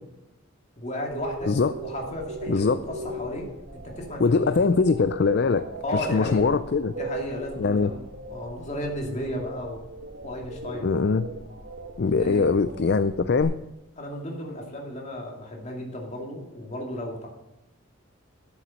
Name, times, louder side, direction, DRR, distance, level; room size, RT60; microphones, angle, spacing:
voice 1, 0.8-4.6 5.8-6.5 6.9-9.8 10.2-10.9 12.2-12.5 14.0-17.3, left 1 dB, 30° left, 0 dB, 2.5 m, -34 dB
sound 1, 1.1-13.4, right 1 dB, 55° right, 1.8 m, -39 dB
voice 2, 2.5-2.8 4.2-5.7 5.9-6.9 7.6-7.9 10.8-11.3 12.0-13.5, left 4 dB, 50° left, 12 dB, 0.4 m, -22 dB
13.0 x 7.1 x 6.4 m, 0.97 s
head